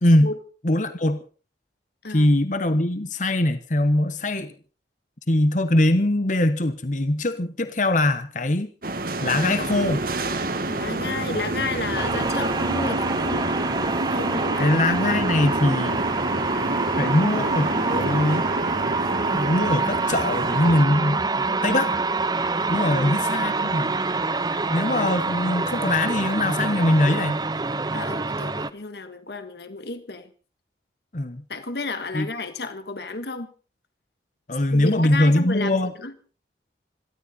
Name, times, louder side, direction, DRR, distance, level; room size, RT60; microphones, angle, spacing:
voice 1, 0.0-0.3 0.6-1.2 2.1-4.5 5.3-8.7 9.2-10.0 14.6-16.0 17.0-18.5 19.3-21.2 21.6-21.9 22.7-24.0 24.7-27.4 31.1-31.4 32.1-32.3 34.5-35.9, left 1 dB, 40° left, 1.1 m, -22 dB
sound 1, 8.8-20.8, right 2 dB, 50° right, 1.7 m, -28 dB
voice 2, 10.7-13.5 14.1-14.8 22.8-23.2 27.9-30.3 31.5-33.5 34.7-36.1, left 3 dB, 60° left, 1.7 m, -32 dB
sound 2, 11.9-28.7, right 3 dB, 20° right, 0.7 m, -26 dB
26.5 x 12.5 x 4.1 m
head